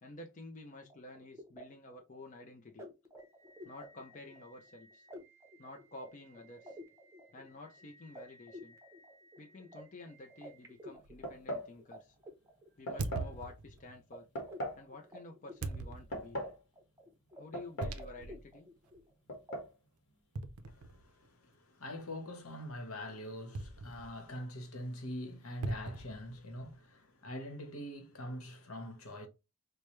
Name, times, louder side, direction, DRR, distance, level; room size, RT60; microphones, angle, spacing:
voice 1, 0.0-2.9 3.6-5.1 5.6-6.8 7.3-8.8 9.4-12.2 12.8-14.3 14.8-16.4 17.3-18.7, left 2 dB, 35° left, 0.5 m, -51 dB
sound 1, 0.8-12.0 12.2-13.8 14.1-14.2 14.4-16.5 16.8-17.4 17.7-19.1 19.5-19.6, equal, 15° right, 0.7 m, -53 dB
sound 2, 11.0-11.2 13.0-14.0 15.6-16.4 17.8-18.5 18.9-19.0 20.3-21.3 23.5-24.3 25.6-26.7, right 2 dB, 85° right, 0.5 m, -41 dB
sound 3, 11.2-11.7 12.9-13.3 14.4-14.8 15.9-16.6 17.5-18.1 18.3-18.4 19.3-19.7, equal, 50° left, 1.3 m, -39 dB
voice 2, 20.7-29.3, equal, 75° left, 1.1 m, -44 dB
4.8 x 2.2 x 3.0 m
head